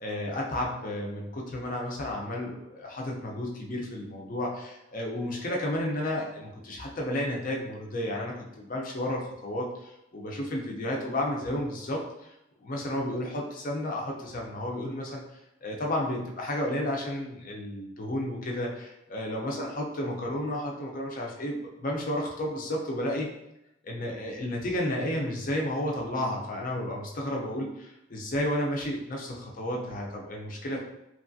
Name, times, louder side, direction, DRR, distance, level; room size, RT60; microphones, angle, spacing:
voice 1, 0.0-12.3 12.6-18.8 19.1-23.3 23.8-30.8, left 1 dB, 45° left, -1 dB, 0.5 m, -32 dB
3.1 x 2.3 x 2.5 m, 0.88 s
head